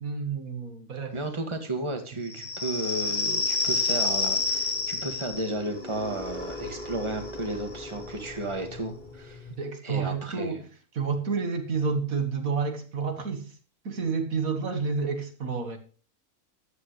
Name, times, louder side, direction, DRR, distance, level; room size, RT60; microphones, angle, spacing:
voice 1, 0.0-1.2 9.6-10.6 10.9-13.5 13.9-15.8, right 5 dB, 65° right, 2.0 m, -29 dB
voice 2, 1.1-9.5 9.8-10.6, right 2 dB, 20° right, 1.9 m, -33 dB
sound 1, 2.3-9.5, left 3 dB, 35° left, 1.5 m, -31 dB
14.0 x 10.5 x 3.2 m
omnidirectional pair, 1.6 m